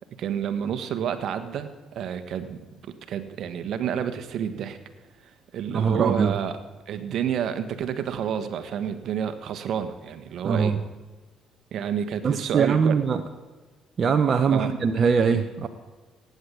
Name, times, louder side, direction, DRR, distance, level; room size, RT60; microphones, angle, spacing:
voice 1, 0.2-1.7 1.9-2.6 3.1-4.8 5.5-6.6 6.9-10.8 11.7-13.0 14.5-14.7, right 8 dB, 65° right, 10 dB, 1.4 m, -29 dB
voice 2, 5.7-6.4 10.4-10.8 12.2-13.2 14.0-15.7, right 6 dB, 45° right, 7 dB, 1.1 m, -22 dB
17.0 x 9.7 x 8.4 m, 1.3 s
supercardioid pair, 75°, 0 cm